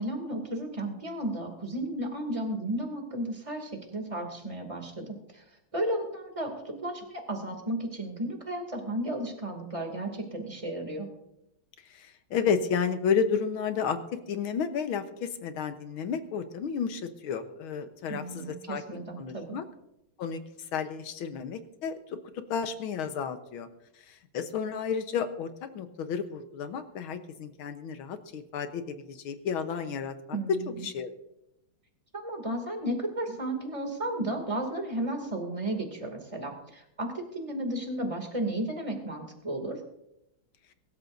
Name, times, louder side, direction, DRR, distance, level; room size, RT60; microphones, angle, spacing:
voice 1, 0.0-5.4 5.7-11.1 18.1-19.6 30.3-30.9 32.1-39.8, right 1 dB, 15° right, 3 dB, 2.5 m, -33 dB
voice 2, 11.9-19.6 20.2-20.4 20.7-23.7 24.1-30.4 30.8-31.1, left 6 dB, 80° left, 9 dB, 1.9 m, -32 dB
23.5 x 13.0 x 2.7 m, 0.84 s
omnidirectional pair, 2.3 m